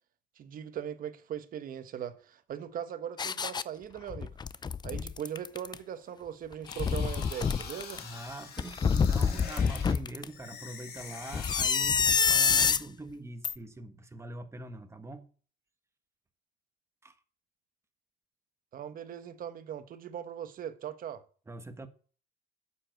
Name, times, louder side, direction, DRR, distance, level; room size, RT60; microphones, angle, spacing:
voice 1, 0.4-4.3 4.8-8.0 18.7-21.2, right 9 dB, 55° right, 1.2 m, -40 dB
sound 1, 3.2-3.6 4.1-5.7 6.5-8.0 8.6-10.2 11.3-12.8 13.4-13.5, left 6 dB, 25° left, 0.5 m, -27 dB
sound 2, 6.7-9.9 10.2-12.2, left 6 dB, 70° left, 2.6 m, -45 dB
voice 2, 8.0-15.3 17.0-17.1 21.5-21.9, right 2 dB, 15° right, 1.4 m, -43 dB
8.5 x 7.2 x 8.0 m
cardioid pair, 110°, 17 cm